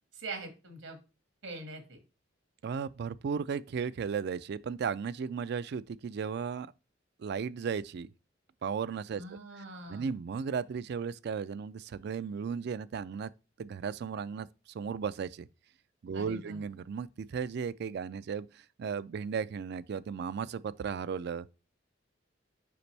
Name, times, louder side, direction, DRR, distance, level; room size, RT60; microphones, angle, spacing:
voice 1, 0.1-1.0 1.4-2.0 9.2-10.1 16.1-16.6, right 2 dB, 90° right, 1.9 m, -43 dB
voice 2, 2.6-6.7 7.2-8.1 8.6-9.2 9.9-13.3 13.6-14.5 14.7-15.5 16.0-21.5, right 6 dB, 60° right, 0.3 m, -35 dB
6.9 x 5.1 x 3.3 m
head